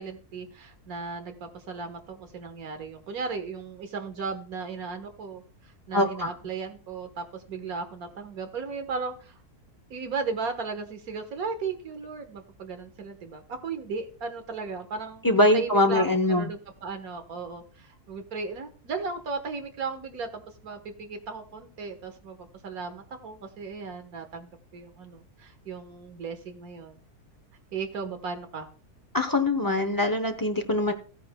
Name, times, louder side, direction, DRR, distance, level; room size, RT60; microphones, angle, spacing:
voice 1, 0.0-9.4 9.9-15.3 15.5-27.0 27.7-28.7, right 4 dB, 70° right, 7 dB, 1.7 m, -36 dB
voice 2, 5.9-6.3 15.2-16.5 29.1-30.9, left 1 dB, 25° left, 6 dB, 0.4 m, -23 dB
15.0 x 9.2 x 2.2 m, 0.40 s
omnidirectional pair, 1.6 m